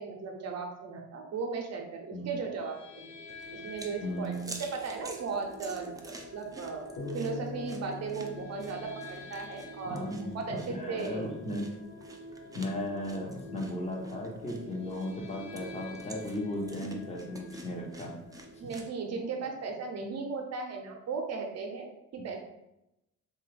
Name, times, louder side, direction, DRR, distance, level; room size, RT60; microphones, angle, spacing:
voice 1, 0.0-3.0 3.5-11.3 18.6-22.4, right 4 dB, 55° right, 2 dB, 0.6 m, -37 dB
sound 1, 2.6-18.7, equal, 85° left, 0.7 m, -47 dB
sound 2, 3.3-18.9, right 2 dB, 10° right, 0.4 m, -50 dB
voice 2, 4.0-4.6 9.8-11.7 12.5-18.2, left 1 dB, 20° left, -2 dB, 0.8 m, -36 dB
sound 3, 7.0-10.4, left 2 dB, 55° left, 1.1 m, -43 dB
2.8 x 2.3 x 3.2 m, 0.89 s
cardioid pair, 90°, 30 cm